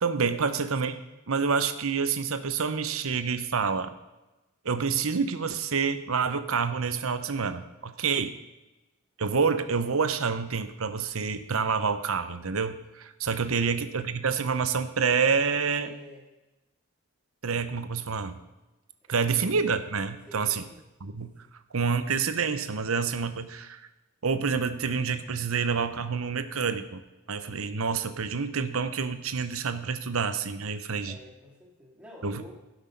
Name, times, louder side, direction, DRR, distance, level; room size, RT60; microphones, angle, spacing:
voice 1, 0.0-1.0 1.3-3.9 4.6-8.3 9.2-15.9 17.4-18.4 19.1-20.6 21.0-21.3 21.7-23.8 24.2-27.0 27.3-31.2 32.2-32.5, right 5 dB, 75° right, 10 dB, 0.8 m, -28 dB
voice 2, 13.4-13.8 15.7-16.3 19.1-19.2 20.3-20.8 21.4-21.5 31.0-32.5, left 1 dB, 5° right, -3 dB, 2.2 m, -49 dB
16.0 x 6.3 x 5.2 m, 1.0 s
head